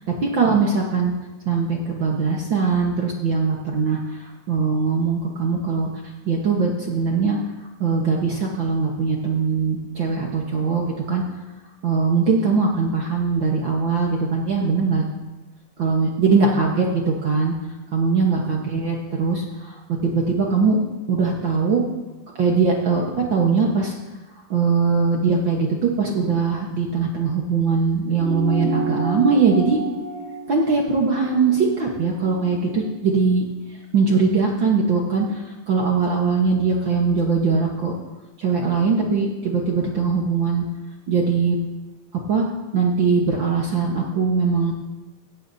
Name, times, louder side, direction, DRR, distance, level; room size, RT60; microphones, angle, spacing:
voice 1, 0.2-1.1 1.4-4.0 4.5-5.9 6.2-7.4 7.8-11.2 11.8-15.0 15.8-17.5 17.9-19.7 20.0-20.8 21.1-21.8 22.3-23.9 24.5-29.8 30.5-33.4 33.9-37.9 38.4-40.6 41.1-41.6 42.3-42.5 42.7-44.7, right 4 dB, 65° right, -1 dB, 1.1 m, -21 dB
sound 1, 28.2-33.0, right 2 dB, 45° right, 3.9 m, -31 dB
17.0 x 13.0 x 2.8 m, 1.1 s
omnidirectional pair, 4.1 m